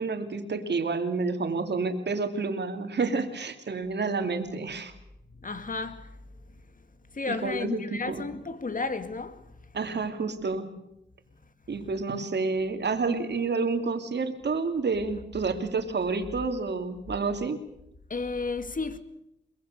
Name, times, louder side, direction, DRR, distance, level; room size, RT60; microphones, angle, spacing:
voice 1, 0.0-4.9 7.3-8.2 9.7-10.7 11.7-17.6, right 4 dB, 65° right, 2.8 m, -29 dB
voice 2, 5.3-6.2 7.0-9.5 18.1-19.0, left 3 dB, 45° left, 2.2 m, -33 dB
23.0 x 21.5 x 6.8 m
cardioid pair, 70°, 19 cm